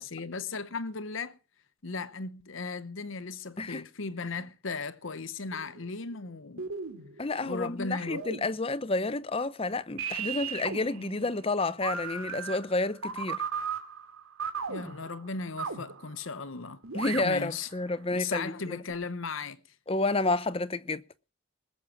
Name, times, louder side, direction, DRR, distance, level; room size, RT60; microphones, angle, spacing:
voice 1, 0.0-1.4 1.8-6.7 7.4-8.2 14.7-16.8 17.1-17.7 18.1-19.6, left 4 dB, 65° left, 0.8 m, -36 dB
sound 1, 5.5-6.2 6.6-7.5 8.0-8.8 10.0-16.4 16.8-17.9 18.9-19.0, right 6 dB, 85° right, 2.4 m, -37 dB
voice 2, 7.2-13.4 16.9-18.8 19.9-21.0, left 2 dB, 25° left, 0.7 m, -30 dB
20.5 x 7.3 x 6.2 m
head